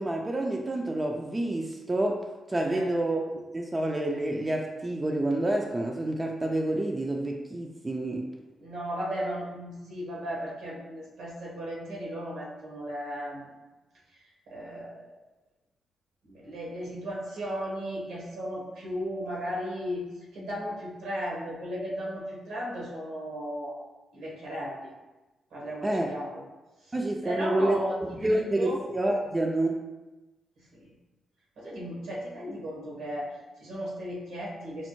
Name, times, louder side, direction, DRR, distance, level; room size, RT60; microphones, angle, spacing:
voice 1, 0.0-8.3 25.8-26.1 26.9-29.8, right 1 dB, 30° right, 1 dB, 0.4 m, -28 dB
voice 2, 2.7-3.0 8.6-13.5 14.5-15.1 16.2-20.1 20.3-23.8 24.1-24.9 25.5-26.4 26.8-26.9 27.2-28.8 30.6-30.9 31.6-34.9, equal, 80° right, -4 dB, 1.1 m, -35 dB
4.3 x 2.0 x 3.0 m, 1.1 s
hypercardioid pair, 40°, 0 cm